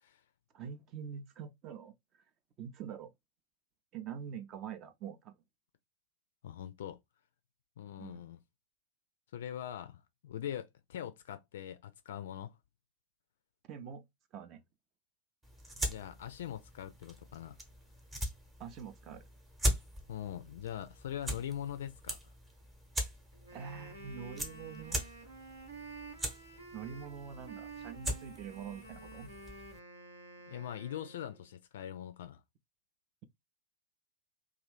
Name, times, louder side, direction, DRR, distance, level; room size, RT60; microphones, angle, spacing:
voice 1, 0.5-1.9 2.6-3.1 3.9-5.4 8.0-8.3 13.6-14.1 14.3-14.6 18.6-19.2 23.5-25.0 26.7-29.3, right 7 dB, 35° right, 0.5 m, -45 dB
voice 2, 6.4-7.0 7.8-8.4 9.3-12.6 15.8-17.6 20.1-22.2 30.5-32.4, left 10 dB, 60° left, 0.3 m, -42 dB
sound 1, 15.4-29.8, equal, 15° right, 0.9 m, -41 dB
Wind instrument woodwind instrument, 23.3-31.5, right 3 dB, 80° right, 0.9 m, -50 dB
2.5 x 2.4 x 3.3 m
figure-of-eight pair, 90°, 0 cm